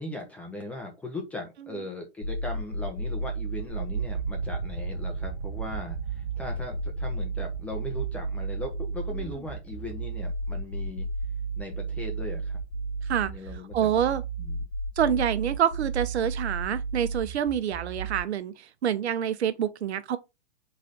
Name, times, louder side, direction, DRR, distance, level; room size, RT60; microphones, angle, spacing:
voice 1, 0.0-11.1 11.6-12.6 13.3-13.9 14.4-14.6, left 2 dB, 5° left, 0.4 m, -38 dB
sound 1, 2.2-18.2, right 3 dB, 50° left, 1.6 m, -33 dB
sound 2, 3.7-13.7 14.0-14.7, right 6 dB, 20° right, 1.6 m, -39 dB
voice 2, 13.7-14.2 15.0-20.2, right 9 dB, 75° right, 0.7 m, -27 dB
3.9 x 3.2 x 3.8 m
hypercardioid pair, 125°, 34 cm